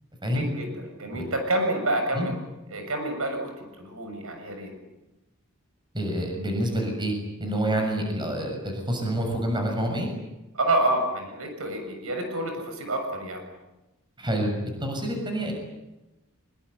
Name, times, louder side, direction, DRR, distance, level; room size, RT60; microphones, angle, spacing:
voice 1, 0.3-2.3 2.7-4.7 10.6-13.4, right 1 dB, 70° right, 5 dB, 7.1 m, -28 dB
voice 2, 5.9-7.1 7.4-10.1 14.2-15.5, right 1 dB, 20° right, 3 dB, 7.0 m, -27 dB
25.5 x 23.5 x 9.5 m, 0.99 s
head